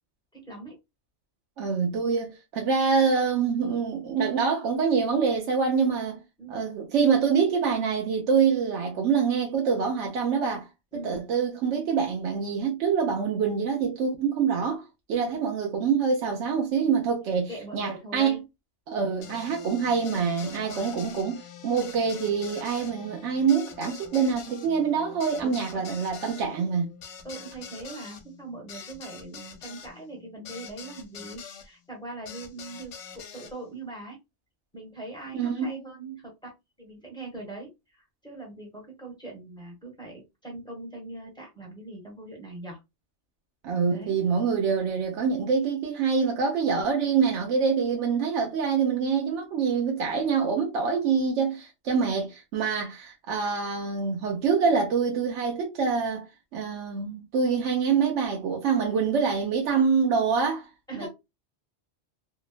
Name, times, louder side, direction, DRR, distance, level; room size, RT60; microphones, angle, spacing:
voice 1, 0.3-0.8 6.4-6.6 10.9-11.1 15.1-15.4 17.5-18.4 19.2-19.3 20.4-20.9 25.4-25.9 27.2-34.2 34.7-36.5 36.8-42.8 43.9-44.2 47.8-48.0 60.9-61.1, right 2 dB, 5° left, 1.0 m, -41 dB
voice 2, 1.6-6.2 6.5-10.7 10.9-14.8 15.1-18.4 18.9-26.9 35.3-35.8 43.6-56.2 56.5-60.7 60.9-61.1, right 6 dB, 90° right, 1.0 m, -25 dB
sound 1, 19.2-31.7 32.3-33.5, left 7 dB, 90° left, 0.9 m, -45 dB
2.9 x 2.1 x 2.3 m
omnidirectional pair, 1.2 m